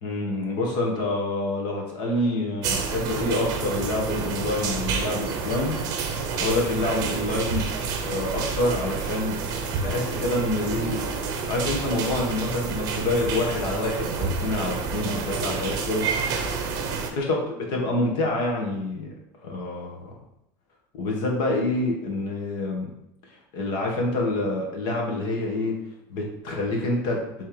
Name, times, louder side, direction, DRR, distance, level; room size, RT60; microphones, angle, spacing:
voice 1, 0.0-5.8 6.1-7.6 8.0-9.4 9.8-11.0 11.5-16.1 16.9-19.1 19.4-20.1 20.9-22.9 23.5-25.8 26.1-27.2, left 2 dB, 50° left, 0 dB, 1.8 m, -27 dB
sound 1, 2.6-17.1, right 5 dB, 40° right, 0.8 m, -29 dB
6.6 x 3.6 x 5.1 m, 0.82 s
cardioid pair, 175°, 10 cm